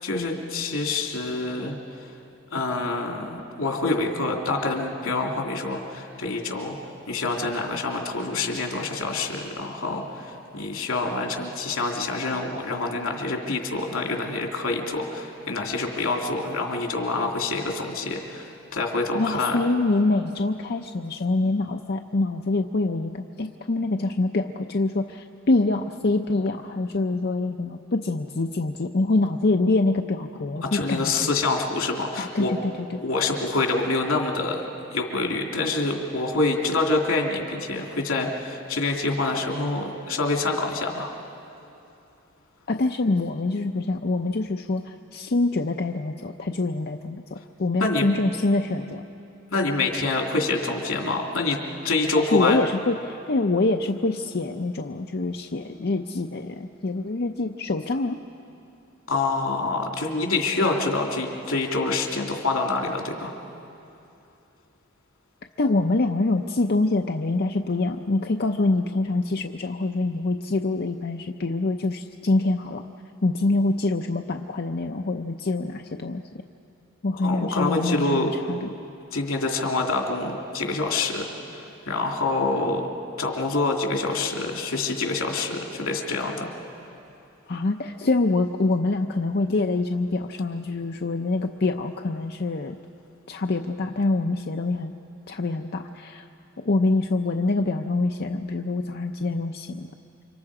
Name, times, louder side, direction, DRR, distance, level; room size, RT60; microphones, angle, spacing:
voice 1, 0.0-1.7 2.5-6.8 7.1-19.6 30.6-32.5 33.0-34.6 34.9-41.1 47.8-48.0 49.5-52.6 59.1-63.3 77.2-78.3 79.1-81.2 81.5-82.9 83.2-86.5, left 3 dB, 85° left, 1 dB, 2.8 m, -26 dB
voice 2, 19.1-31.3 32.2-33.0 42.7-49.0 52.1-58.2 65.6-72.8 73.2-76.2 77.0-78.7 87.5-92.8 93.3-94.9 95.3-96.3 96.6-99.9, left 2 dB, 50° left, 4 dB, 0.6 m, -25 dB
29.5 x 25.5 x 4.9 m, 2.7 s
head